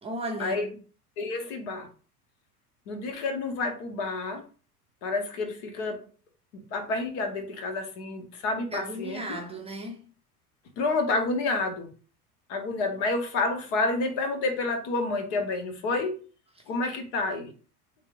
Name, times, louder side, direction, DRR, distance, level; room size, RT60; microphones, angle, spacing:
voice 1, 0.0-0.8 8.7-10.0, right 2 dB, 15° right, 0.6 m, -35 dB
voice 2, 1.2-1.9 2.9-4.4 5.0-6.0 6.7-9.4 10.8-11.9 12.5-16.2 16.7-17.5, left 3 dB, 50° left, 1.0 m, -29 dB
3.4 x 3.1 x 2.5 m
figure-of-eight pair, 75°, 45 cm